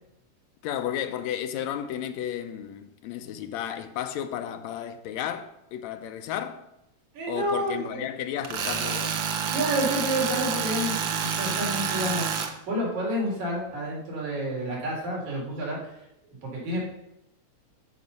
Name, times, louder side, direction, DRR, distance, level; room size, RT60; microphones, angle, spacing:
voice 1, 0.6-6.7 7.3-9.2, left 10 dB, 80° left, 1.9 m, -33 dB
voice 2, 7.1-8.0 9.5-12.3 12.7-15.9 16.4-16.8, right 1 dB, 80° right, 4.7 m, -29 dB
Tools, 8.4-12.5, right 7 dB, 65° right, 1.2 m, -28 dB
14.5 x 5.7 x 5.4 m
omnidirectional pair, 3.3 m